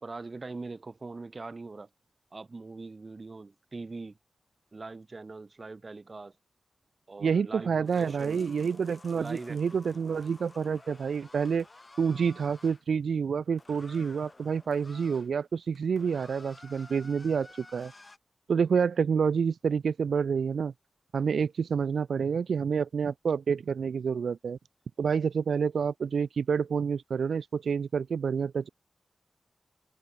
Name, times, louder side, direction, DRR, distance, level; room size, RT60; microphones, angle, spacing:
voice 1, 0.0-1.9 2.3-4.2 4.7-6.3 7.1-8.4 9.1-10.0, right 3 dB, 35° right, 2.9 m, -42 dB
voice 2, 7.2-11.7 12.0-17.9 18.5-20.7 21.1-24.6 25.0-28.7, right 6 dB, 80° right, 0.5 m, -28 dB
sound 1, 7.9-12.8 13.6-15.3 15.6-18.2, left 2 dB, 25° left, 5.9 m, -53 dB
wide cardioid pair, 150°, 0 cm